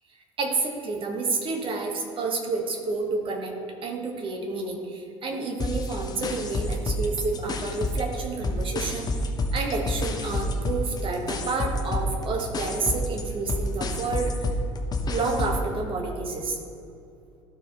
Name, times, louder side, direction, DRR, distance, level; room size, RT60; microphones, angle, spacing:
voice 1, 0.4-3.5 3.8-9.1 9.5-14.3 15.1-16.6, right 3 dB, 35° right, 2 dB, 1.3 m, -29 dB
sound 1, 5.6-8.2 8.4-15.7, left 1 dB, 25° left, 0.9 m, -29 dB
13.0 x 4.7 x 3.0 m, 2.6 s
figure-of-eight pair, 65°, 16 cm